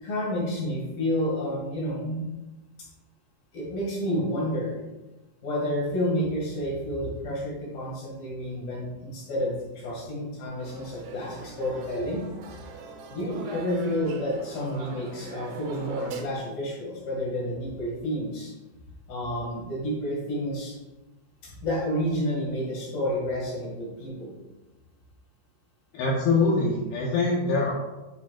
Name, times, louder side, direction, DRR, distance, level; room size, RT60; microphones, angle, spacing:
voice 1, 0.0-2.2 3.5-4.8 5.4-12.2 13.1-18.5 19.1-20.8 21.4-24.3, equal, 55° left, -4 dB, 3.6 m, -30 dB
sound 1, 10.6-16.2, right 5 dB, 75° right, 2.7 m, -42 dB
voice 2, 25.9-27.7, left 3 dB, 75° left, -2 dB, 2.5 m, -23 dB
10.0 x 7.3 x 2.5 m, 1.1 s
omnidirectional pair, 5.3 m